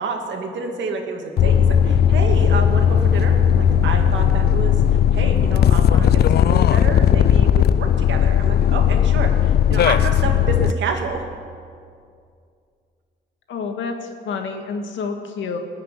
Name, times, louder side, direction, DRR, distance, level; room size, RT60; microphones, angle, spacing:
voice 1, 0.0-4.7 5.1-6.1 6.4-11.3, right 4 dB, 70° right, 3 dB, 2.3 m, -28 dB
sound 1, 1.4-10.7, left 9 dB, 55° left, 0.5 m, -16 dB
voice 2, 13.5-15.6, left 5 dB, 70° left, 4 dB, 1.9 m, -28 dB
19.5 x 6.8 x 9.6 m, 2.3 s
cardioid pair, 90°, 20 cm